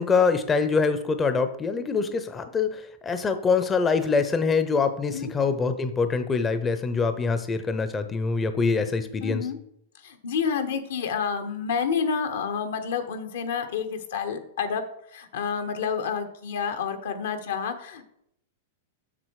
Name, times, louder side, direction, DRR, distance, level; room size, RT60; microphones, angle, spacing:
voice 1, 0.0-9.5, left 5 dB, 20° left, 9 dB, 0.6 m, -24 dB
voice 2, 9.2-9.6 10.0-14.8 15.1-18.0, left 6 dB, 75° left, 7 dB, 1.2 m, -29 dB
7.5 x 6.2 x 4.7 m, 0.75 s
hypercardioid pair, 130°, 0 cm